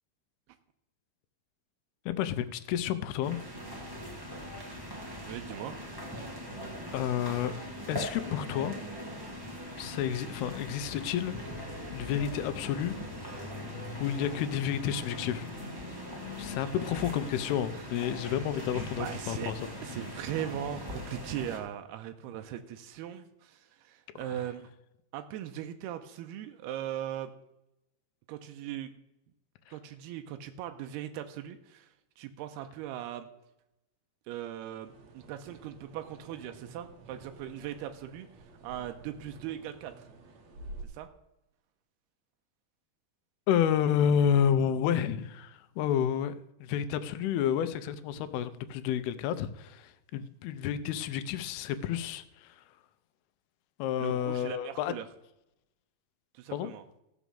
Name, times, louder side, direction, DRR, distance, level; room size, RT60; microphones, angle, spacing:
voice 1, 2.1-3.4 6.9-7.6 7.9-8.8 9.8-11.7 11.9-12.9 14.0-15.5 16.4-19.7 24.2-24.4 29.7-29.8 43.5-52.8 53.8-54.9 56.5-56.7, left 9 dB, 80° left, 12 dB, 2.6 m, -30 dB
sound 1, 3.2-21.6, equal, 20° right, 0.5 m, -41 dB
voice 2, 5.2-5.8 16.3-16.6 19.0-19.5 19.8-24.7 25.1-27.3 28.3-28.9 29.7-33.3 34.3-38.3 38.6-40.1 40.8-41.1 54.0-55.1 56.3-56.8, right 11 dB, 90° right, 7 dB, 2.7 m, -39 dB
sound 2, 11.5-16.5, left 3 dB, 40° left, 1.8 m, -45 dB
sound 3, 34.8-40.8, right 2 dB, 60° right, 2.1 m, -50 dB
15.0 x 6.1 x 6.9 m, 0.89 s
omnidirectional pair, 4.6 m